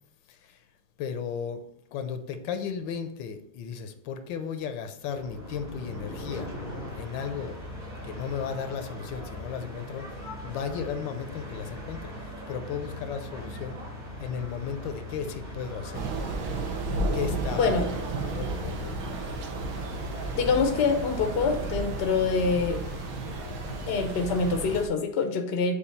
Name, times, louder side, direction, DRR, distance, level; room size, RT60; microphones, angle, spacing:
voice 1, 0.3-0.6 1.0-1.6 1.9-6.5 6.9-7.6 8.0-13.8 14.2-16.1 16.4-16.6 17.1-19.4, left 7 dB, 85° left, 1.4 m, -35 dB
sound 1, 5.1-24.8, equal, 25° right, 1.2 m, -39 dB
Thunder / Rain, 15.9-24.9, right 2 dB, 65° right, 1.3 m, -33 dB
voice 2, 17.6-17.9 20.4-22.8 23.9-25.7, left 4 dB, 60° left, 0.6 m, -25 dB
6.7 x 2.6 x 5.4 m
omnidirectional pair, 2.0 m